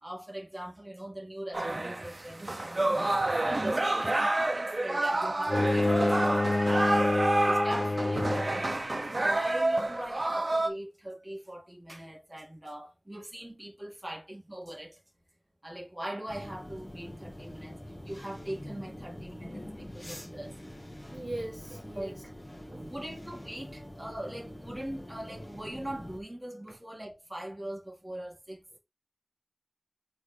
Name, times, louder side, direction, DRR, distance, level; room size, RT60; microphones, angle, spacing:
voice 1, 0.0-3.2 3.5-7.0 7.5-8.8 9.2-15.0 15.6-17.8 18.1-20.6 21.9-22.2 22.9-28.8, right 1 dB, 25° right, 2.3 m, -41 dB
sound 1, 1.5-10.7, right 2 dB, 65° right, 1.0 m, -29 dB
Bowed string instrument, 5.5-8.7, left 2 dB, 70° left, 0.7 m, -27 dB
sound 2, 16.3-26.2, left 1 dB, 30° left, 1.9 m, -45 dB
voice 2, 21.1-22.2 22.7-22.9, right 1 dB, 50° right, 1.7 m, -40 dB
4.5 x 4.2 x 5.2 m
wide cardioid pair, 45°, 0 cm